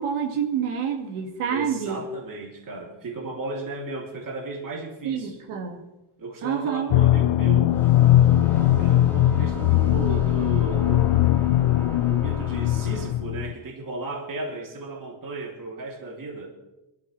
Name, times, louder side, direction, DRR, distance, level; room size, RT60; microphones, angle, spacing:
voice 1, 0.0-2.0 5.0-5.8 6.4-7.0, right 7 dB, 85° right, 4 dB, 2.3 m, -27 dB
voice 2, 1.5-5.3 6.2-7.7 8.8-11.2 12.1-16.5, right 3 dB, 40° right, 0 dB, 3.2 m, -35 dB
sound 1, 6.9-13.5, left 14 dB, 80° left, 0.6 m, -20 dB
sound 2, 7.7-13.4, left 1 dB, 5° left, 2.3 m, -37 dB
23.0 x 13.0 x 3.3 m, 0.98 s
cardioid pair, 115°, 49 cm